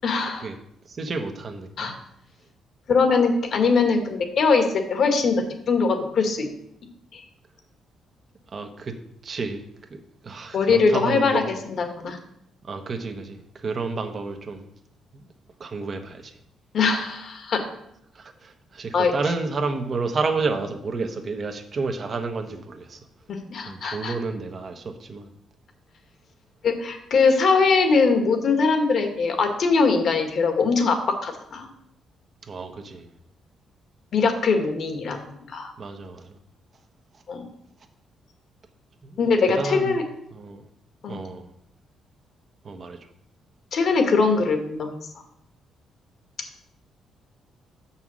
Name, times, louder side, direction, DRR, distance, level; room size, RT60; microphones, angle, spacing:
voice 1, 0.0-0.5 1.8-1.9 2.9-6.5 7.1-7.2 10.5-12.2 16.7-17.6 18.9-19.1 23.3-24.1 26.6-31.7 34.1-35.2 35.5-35.7 37.3-37.4 39.2-40.0 41.0-41.2 43.7-44.9, left 4 dB, 60° left, 5 dB, 1.6 m, -21 dB
voice 2, 0.8-2.0 8.5-8.9 9.2-9.6 9.9-11.4 12.6-14.7 15.1-15.3 15.6-16.3 18.1-23.1 23.6-25.3 32.4-33.1 35.8-36.4 39.0-39.3 39.6-40.0 40.3-40.6 41.1-41.4 42.6-43.0, right 4 dB, 45° right, 5 dB, 1.1 m, -30 dB
6.9 x 5.7 x 6.2 m, 0.75 s
cardioid pair, 90°, 0 cm